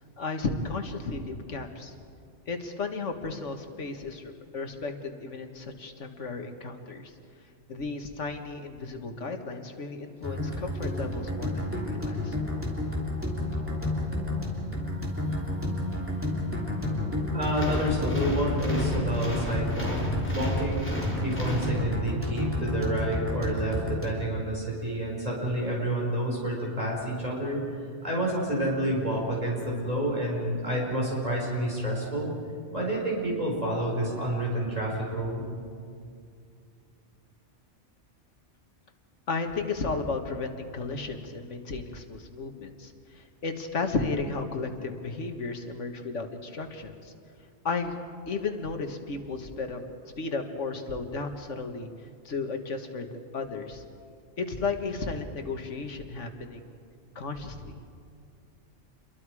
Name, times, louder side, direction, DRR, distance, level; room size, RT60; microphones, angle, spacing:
voice 1, 0.2-1.9 2.5-7.1 7.7-12.4 39.3-47.1 47.6-48.0 48.3-51.9 52.3-53.1 53.3-53.8 54.4-56.8 57.2-57.7, left 4 dB, 90° left, 6 dB, 1.9 m, -34 dB
sound 1, 10.2-24.2, left 2 dB, 10° right, 3.1 m, -31 dB
voice 2, 17.3-20.0 20.3-27.6 28.0-32.3 32.7-35.4, right 1 dB, 30° right, -3 dB, 5.0 m, -29 dB
sound 2, 17.5-22.3, equal, 10° left, 3.8 m, -32 dB
28.0 x 22.5 x 4.9 m, 2.3 s
omnidirectional pair, 1.2 m